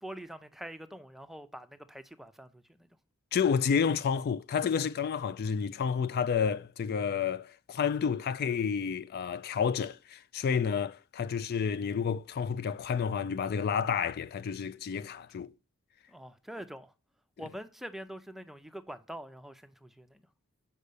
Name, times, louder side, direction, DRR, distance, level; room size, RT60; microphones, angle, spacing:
voice 1, 0.0-2.9 16.1-16.9 17.4-20.2, right 1 dB, ahead, 0.5 m, -45 dB
voice 2, 3.3-15.5, left 6 dB, 45° left, 0.3 m, -30 dB
6.6 x 5.5 x 6.7 m
head